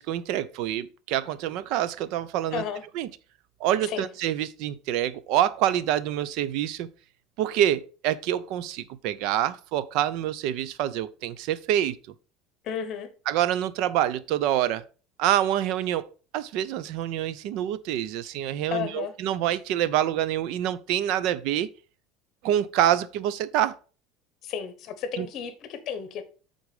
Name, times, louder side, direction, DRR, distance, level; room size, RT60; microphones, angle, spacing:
voice 1, 0.0-2.6 2.9-3.1 3.6-6.9 7.4-12.0 13.3-14.8 15.2-16.1 16.3-21.7 22.4-23.8 25.2-25.3, right 11 dB, 55° right, 0.5 m, -26 dB
voice 2, 2.5-2.8 3.8-4.1 12.6-13.1 18.7-19.1 24.4-26.2, left 8 dB, 40° left, 1.1 m, -33 dB
8.1 x 4.0 x 5.0 m
cardioid pair, 170°, 0 cm